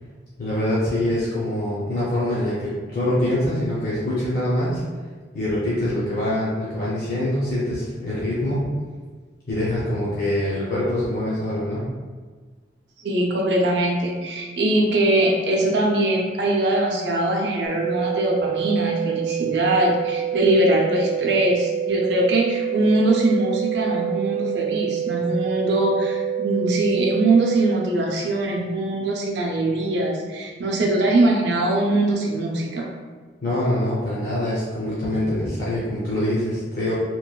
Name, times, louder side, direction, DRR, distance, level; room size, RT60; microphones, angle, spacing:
voice 1, 0.4-4.8 5.3-8.7 9.5-11.9 33.4-36.9, left 1 dB, 50° left, -9 dB, 0.6 m, -24 dB
voice 2, 13.0-32.9, right 1 dB, 65° right, 0 dB, 0.5 m, -22 dB
sound 1, 17.6-27.7, right 10 dB, 85° left, 0.7 m, -27 dB
2.9 x 2.2 x 2.3 m, 1.5 s
head